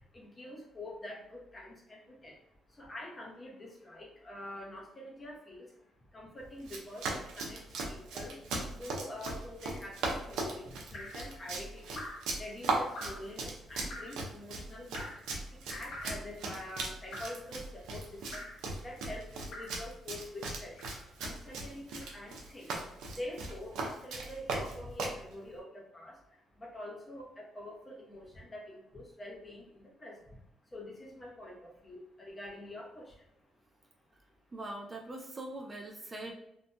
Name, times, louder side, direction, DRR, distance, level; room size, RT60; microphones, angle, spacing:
voice 1, 0.0-2.3 2.8-5.7 6.1-7.6 7.9-8.4 8.8-12.0 12.4-15.1 15.7-18.4 18.8-20.7 21.2-22.7 23.1-26.2 26.6-30.2 30.7-33.1, left 1 dB, 25° left, -2 dB, 0.9 m, -45 dB
Run, 6.6-25.2, right 3 dB, 85° right, 0.5 m, -38 dB
Drip, 10.9-11.3 11.9-12.3 12.9-13.3 13.9-14.2 14.9-15.3 15.9-16.3 17.1-17.5 18.3-18.6 19.5-19.8 20.8-21.1 22.0-22.2, left 1 dB, 80° left, 0.8 m, -45 dB
voice 2, 34.5-36.3, right 2 dB, 25° right, 0 dB, 0.4 m, -42 dB
2.7 x 2.6 x 2.2 m, 0.85 s
cardioid pair, 90°, 0 cm